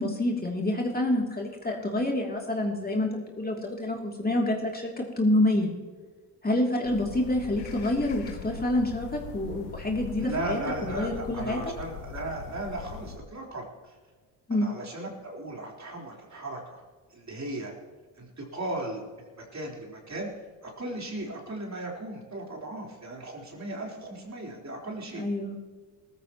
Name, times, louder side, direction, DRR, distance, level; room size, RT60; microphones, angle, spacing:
voice 1, 0.0-5.7 6.4-11.6 14.5-14.7 25.2-25.6, left 1 dB, 20° left, 0 dB, 2.9 m, -27 dB
sound 1, 6.8-13.2, left 7 dB, 80° left, 1.6 m, -41 dB
voice 2, 10.2-14.0 14.5-16.8 17.1-17.7 18.2-20.3 20.6-25.3, right 2 dB, 35° right, -1 dB, 4.0 m, -36 dB
19.5 x 14.0 x 3.0 m, 1.5 s
hypercardioid pair, 50°, 49 cm